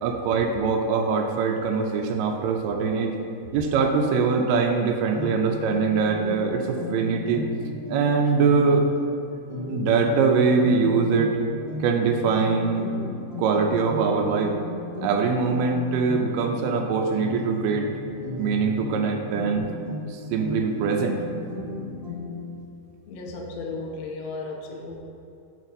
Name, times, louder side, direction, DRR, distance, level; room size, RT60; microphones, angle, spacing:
voice 1, 0.0-3.2 3.5-7.4 7.9-8.9 9.7-11.4 11.8-12.9 13.4-14.6 15.0-17.9 18.4-19.7 20.1-21.2, right 5 dB, 80° right, 3 dB, 2.1 m, -23 dB
sound 1, 5.1-22.6, left 3 dB, 45° right, 1.7 m, -35 dB
voice 2, 23.1-25.0, left 3 dB, 85° left, 0 dB, 1.5 m, -34 dB
9.0 x 3.3 x 5.2 m, 2.7 s
omnidirectional pair, 4.2 m